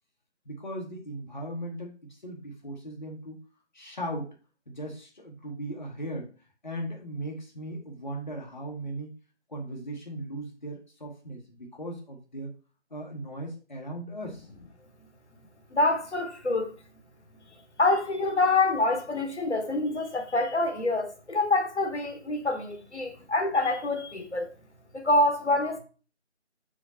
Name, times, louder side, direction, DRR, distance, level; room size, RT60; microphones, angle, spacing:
voice 1, 0.5-1.9 2.2-3.4 3.7-4.3 4.7-6.3 6.6-9.1 9.5-12.5 12.9-14.4 23.1-23.3, right 1 dB, 40° left, 1.0 m, -37 dB
voice 2, 15.7-16.7 17.8-24.5 24.9-25.8, left 2 dB, 70° left, 1.3 m, -26 dB
5.1 x 5.0 x 4.1 m
figure-of-eight pair, 170°, 36 cm